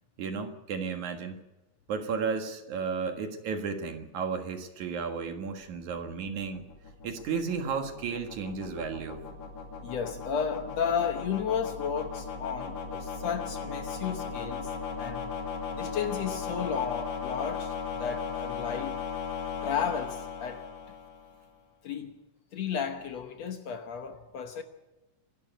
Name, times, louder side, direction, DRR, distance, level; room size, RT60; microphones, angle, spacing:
voice 1, 0.2-1.4 1.9-6.7 7.0-9.3, right 5 dB, 65° right, 3.0 m, -33 dB
sound 1, 5.3-21.4, left 5 dB, 80° left, 4.1 m, -37 dB
voice 2, 9.8-15.3 15.8-19.0 19.6-20.7 21.8-22.1 22.5-24.6, left 7 dB, 65° left, 2.0 m, -33 dB
25.0 x 12.0 x 9.1 m
omnidirectional pair, 3.8 m